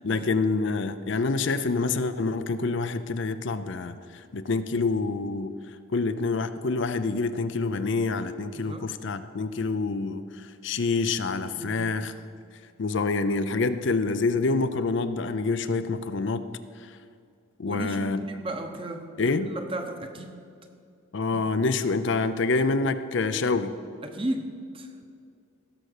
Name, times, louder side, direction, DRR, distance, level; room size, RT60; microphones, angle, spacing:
voice 1, 0.0-5.5 5.9-12.1 12.8-16.4 16.8-17.0 17.6-18.2 19.2-19.5 21.1-23.8, left 3 dB, 60° left, 11 dB, 0.5 m, -27 dB
voice 2, 8.5-8.9 11.6-11.9 17.7-20.4 21.3-21.4 24.0-24.9, right 1 dB, 25° right, 5 dB, 0.9 m, -35 dB
16.0 x 6.6 x 6.6 m, 2.3 s
head